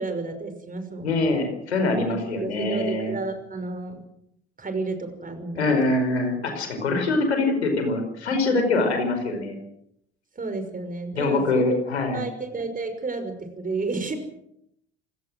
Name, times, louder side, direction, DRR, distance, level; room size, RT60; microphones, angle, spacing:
voice 1, 0.0-1.5 2.1-4.0 4.6-5.9 10.4-11.8 12.1-14.2, right 3 dB, 25° right, 8 dB, 5.9 m, -32 dB
voice 2, 1.0-3.1 5.6-9.6 11.1-12.2, left 2 dB, 80° left, 6 dB, 5.1 m, -24 dB
27.0 x 18.0 x 6.3 m, 0.77 s
figure-of-eight pair, 60°, 33 cm